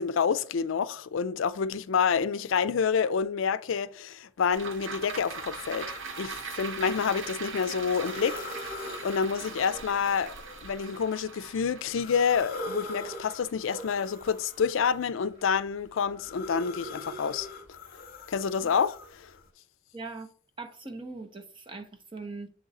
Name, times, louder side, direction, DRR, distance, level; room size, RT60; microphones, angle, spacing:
voice 1, 0.0-5.9 6.2-10.4 10.6-17.5 18.3-19.3, left 6 dB, 70° left, 0.4 m, -28 dB
sound 1, 4.5-15.0 15.4-15.5, right 5 dB, 70° right, 0.8 m, -41 dB
sound 2, 5.0-7.2 7.7-11.4 11.9-15.1 15.5-19.4, left 2 dB, 45° left, 0.9 m, -43 dB
voice 2, 19.9-20.3 20.6-22.5, right 3 dB, 25° right, 0.7 m, -41 dB
7.2 x 3.8 x 4.1 m
head